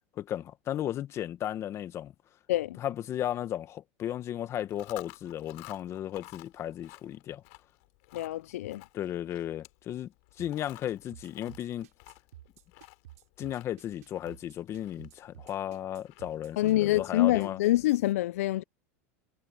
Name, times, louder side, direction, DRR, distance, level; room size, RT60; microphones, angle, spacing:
voice 1, 0.2-2.1 2.8-7.4 8.9-11.9 13.4-17.6, left 11 dB, 35° left, 1.4 m, -35 dB
Chewing mastication, 4.6-17.8, left 27 dB, 65° left, 3.4 m, -54 dB
voice 2, 8.1-8.8 16.6-18.6, left 15 dB, 85° left, 0.4 m, -26 dB
sound 1, 10.4-18.1, right 14 dB, 90° right, 3.5 m, -52 dB
supercardioid pair, 125°, 8 cm